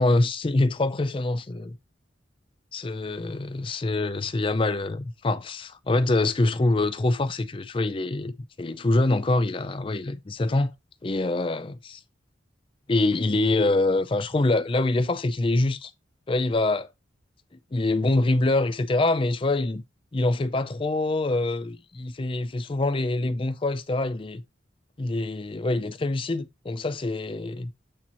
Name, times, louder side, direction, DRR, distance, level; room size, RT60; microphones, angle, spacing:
voice 1, 0.0-1.8 2.7-10.7 11.0-12.0 12.9-15.9 16.3-16.9 17.7-19.8 20.1-24.4 25.0-27.7, left 2 dB, 30° left, 0.4 m, -25 dB
8.5 x 2.9 x 4.2 m
head